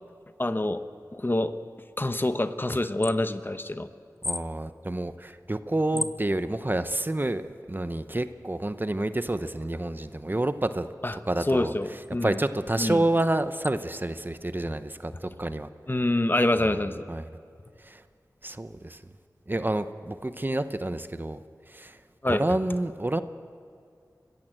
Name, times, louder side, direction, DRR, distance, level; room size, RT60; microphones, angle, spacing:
voice 1, 0.4-0.8 1.1-1.5 2.0-3.9 5.9-6.0 11.0-12.4 12.8-13.0 15.9-17.0 22.2-22.4, left 1 dB, 30° left, 10 dB, 0.9 m, -26 dB
voice 2, 4.2-7.4 7.7-10.9 11.3-11.7 12.2-15.7 17.1-17.2 17.8-18.0 18.4-19.0 19.5-21.4 21.7-22.0 22.3-23.2, right 1 dB, 30° right, 11 dB, 0.8 m, -28 dB
25.0 x 15.0 x 7.8 m, 2.3 s
wide cardioid pair, 45°, 7 cm